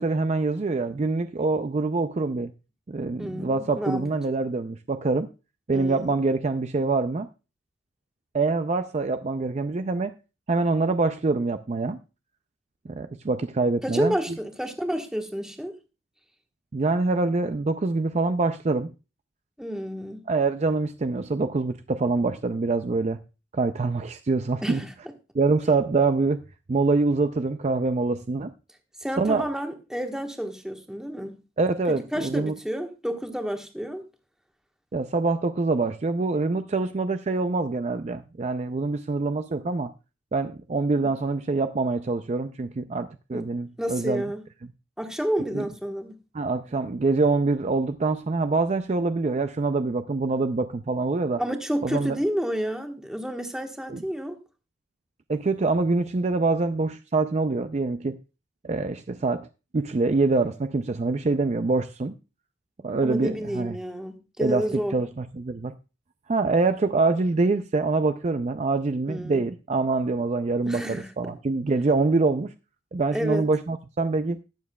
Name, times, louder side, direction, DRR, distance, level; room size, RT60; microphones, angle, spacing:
voice 1, 0.0-2.5 2.9-5.3 5.7-7.3 8.3-10.1 10.5-12.0 12.9-14.1 16.7-18.9 20.3-23.2 23.5-24.8 25.3-26.4 26.7-28.5 29.2-29.4 31.6-32.6 34.9-39.9 40.3-44.2 45.5-45.7 46.3-51.4 51.8-52.2 53.9-54.0 55.3-58.2 58.6-59.5 59.7-62.1 62.8-63.8 64.4-64.7 64.9-65.7 66.3-72.5 72.9-74.4, right 3 dB, 35° right, 0.4 m, -25 dB
voice 2, 3.2-4.0 5.7-6.0 13.8-15.8 19.6-20.2 24.6-24.9 29.0-31.4 32.1-34.0 43.3-43.5 43.8-44.4 45.0-46.2 51.4-54.4 63.0-65.0 69.1-69.4 70.6-71.3 73.1-73.5, equal, 5° right, 1.2 m, -30 dB
20.5 x 7.2 x 2.2 m
head